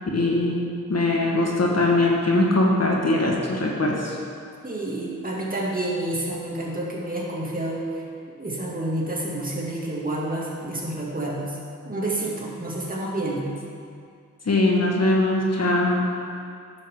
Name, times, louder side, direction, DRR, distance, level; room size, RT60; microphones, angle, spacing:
voice 1, 0.1-0.6 0.9-4.2 14.4-16.0, left 2 dB, 50° left, -2 dB, 1.5 m, -21 dB
voice 2, 4.6-7.8 8.4-11.5 11.9-13.4, right 1 dB, 25° right, -5 dB, 2.4 m, -29 dB
10.5 x 7.2 x 3.7 m, 2.3 s
cardioid pair, 45°, 32 cm